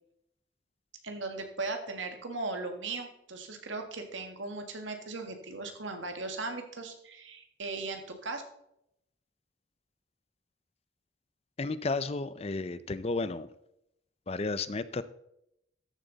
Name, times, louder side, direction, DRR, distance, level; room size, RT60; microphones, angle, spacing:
voice 1, 1.0-8.4, right 3 dB, 75° right, 5 dB, 1.8 m, -38 dB
voice 2, 11.6-13.5 14.3-15.0, left 3 dB, 30° left, 14 dB, 0.5 m, -32 dB
13.5 x 7.6 x 4.0 m, 0.79 s
head